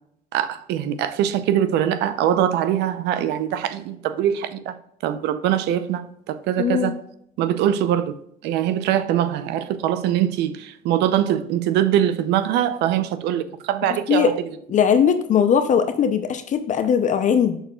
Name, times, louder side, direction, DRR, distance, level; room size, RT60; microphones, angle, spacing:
voice 1, 0.3-4.7 5.0-7.0 7.4-8.2 8.4-14.4, right 10 dB, 85° right, 0.6 m, -22 dB
voice 2, 6.6-6.9 14.1-14.3 14.7-17.6, left 7 dB, 45° left, 0.6 m, -19 dB
6.6 x 6.4 x 2.3 m
cardioid pair, 110°, 17 cm